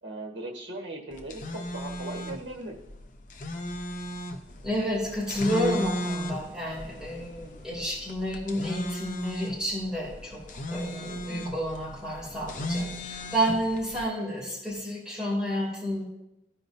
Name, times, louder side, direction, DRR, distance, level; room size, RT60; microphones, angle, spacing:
voice 1, 0.0-2.7 11.1-11.5, right 1 dB, 90° right, 0 dB, 1.4 m, -39 dB
sound 1, 1.1-14.1, left 1 dB, 45° left, 0.7 m, -36 dB
voice 2, 4.6-10.4 10.7-16.0, equal, 5° right, -7 dB, 2.8 m, -30 dB
14.0 x 5.1 x 2.6 m, 0.88 s
head